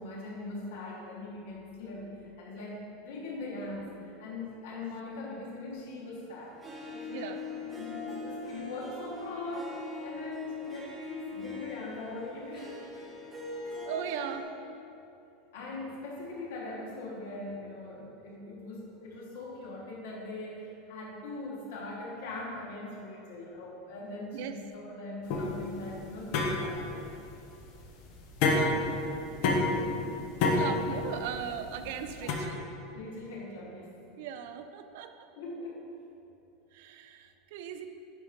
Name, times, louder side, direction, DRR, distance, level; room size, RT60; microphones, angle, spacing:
voice 1, 0.0-6.6 6.9-12.8 15.5-27.2 29.6-30.2 32.2-32.3 32.9-34.0 35.4-35.9, left 2 dB, 85° left, -3 dB, 1.3 m, -41 dB
Harp, 6.6-14.4, left 3 dB, 15° right, 0.9 m, -41 dB
voice 2, 13.9-14.5 24.3-24.5 28.4-28.8 30.5-32.7 34.2-35.1 36.7-37.9, right 8 dB, 60° right, 8 dB, 0.4 m, -38 dB
sound 1, 25.3-32.3, left 2 dB, 50° left, 0.8 m, -29 dB
10.5 x 4.9 x 2.6 m, 2.8 s
supercardioid pair, 160°, 0 cm